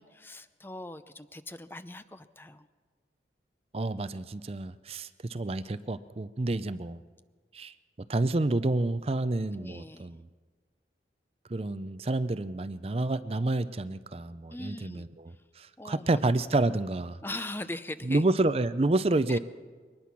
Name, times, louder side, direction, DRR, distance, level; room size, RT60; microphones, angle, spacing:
voice 1, 0.0-2.7 9.5-10.1 14.5-15.1 15.8-16.2 17.2-18.2 19.3-19.4, left 2 dB, 10° left, 12 dB, 0.5 m, -41 dB
voice 2, 3.7-7.0 7.5-7.7 8.1-10.2 11.5-17.2 18.1-19.4, right 2 dB, 35° right, 13 dB, 0.5 m, -29 dB
22.5 x 19.5 x 6.0 m, 1.5 s
head